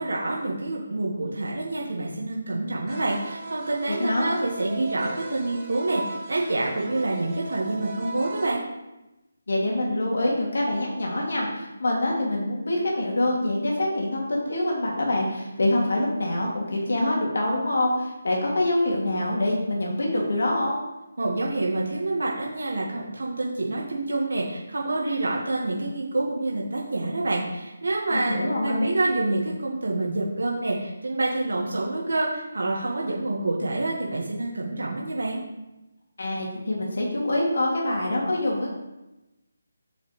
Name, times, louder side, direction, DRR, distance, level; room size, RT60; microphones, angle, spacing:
voice 1, 0.0-8.6 21.2-35.4, right 2 dB, 75° right, -2 dB, 1.7 m, -27 dB
sound 1, 2.9-8.5, right 2 dB, 25° right, 2.6 m, -38 dB
voice 2, 3.9-4.4 9.5-20.8 28.1-28.9 36.2-38.7, left 1 dB, 70° left, -2 dB, 2.5 m, -25 dB
7.2 x 6.7 x 3.3 m, 0.99 s
figure-of-eight pair, 160°, 0 cm